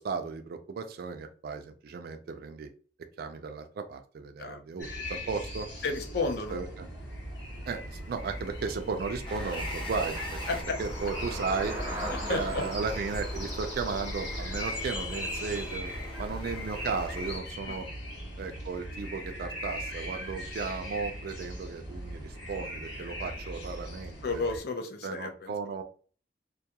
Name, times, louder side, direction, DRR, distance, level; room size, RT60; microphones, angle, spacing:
voice 1, 0.0-2.7 3.2-5.7 6.5-6.9 7.7-11.8 12.3-15.9 16.2-17.9 18.4-24.4 25.0-25.8, right 5 dB, 60° right, 7 dB, 0.3 m, -35 dB
sound 1, 4.8-24.6, equal, 85° left, 1.0 m, -39 dB
voice 2, 5.8-6.6 10.5-10.8 12.3-12.6 17.7-17.8 24.2-25.5, left 3 dB, 60° left, 6 dB, 0.5 m, -32 dB
Traffic noise roadway noise / Bicycle, 6.8-16.0, right 1 dB, 10° right, 0.6 m, -41 dB
sound 2, 9.2-17.4, left 1 dB, 30° left, 0.7 m, -43 dB
2.2 x 2.2 x 2.8 m, 0.41 s
head